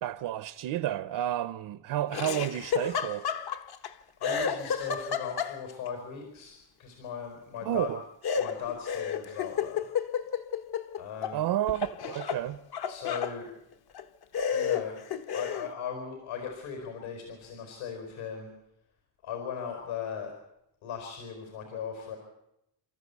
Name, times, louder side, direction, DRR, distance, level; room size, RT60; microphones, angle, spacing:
voice 1, 0.0-3.3 7.6-8.0 11.3-12.6, right 12 dB, 55° right, 0.7 m, -31 dB
Laughter, 2.1-3.9 4.2-5.9 8.2-11.4 11.7-13.4 13.9-14.0 14.3-15.7, left 7 dB, 50° left, 1.2 m, -31 dB
voice 2, 3.8-6.5 6.8-7.9 8.3-9.9 11.0-11.5 12.9-13.5 14.5-14.9 15.3-18.5 19.2-20.3 20.8-22.2, left 7 dB, 70° left, 4.6 m, -38 dB
28.5 x 14.0 x 8.2 m
cardioid pair, 180°, 49 cm